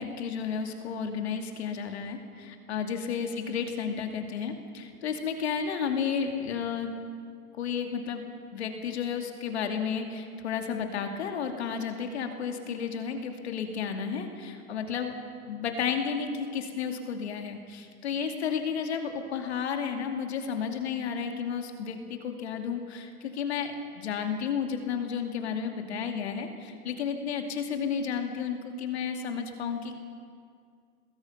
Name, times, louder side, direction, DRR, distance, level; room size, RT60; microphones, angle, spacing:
voice 1, 0.0-6.9 7.6-15.1 15.5-29.9, left 6 dB, 45° left, 4 dB, 2.5 m, -32 dB
27.0 x 20.5 x 5.7 m, 2.3 s
hypercardioid pair, 170°, 46 cm